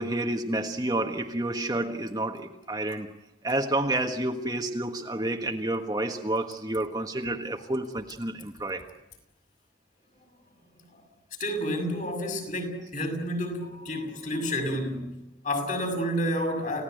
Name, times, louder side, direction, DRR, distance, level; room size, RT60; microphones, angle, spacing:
voice 1, 0.0-3.1 3.4-8.9, right 1 dB, 20° right, 1.4 m, -29 dB
voice 2, 11.4-16.8, equal, 40° left, 6.3 m, -30 dB
29.5 x 17.0 x 9.3 m
head